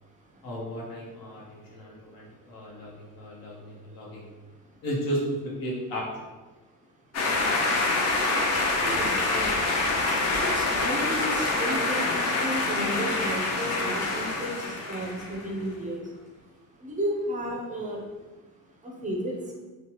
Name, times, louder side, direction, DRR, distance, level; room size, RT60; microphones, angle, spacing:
voice 1, 0.4-4.3 4.8-6.3 7.8-7.9, equal, 75° left, -4 dB, 0.9 m, -34 dB
sound 1, 7.1-15.5, left 2 dB, 45° left, 0.5 m, -26 dB
voice 2, 8.8-9.5 10.4-16.0 16.8-18.0 18.8-19.5, right 1 dB, 20° right, -1 dB, 0.4 m, -33 dB
3.0 x 2.1 x 2.9 m, 1.2 s
cardioid pair, 135°, 36 cm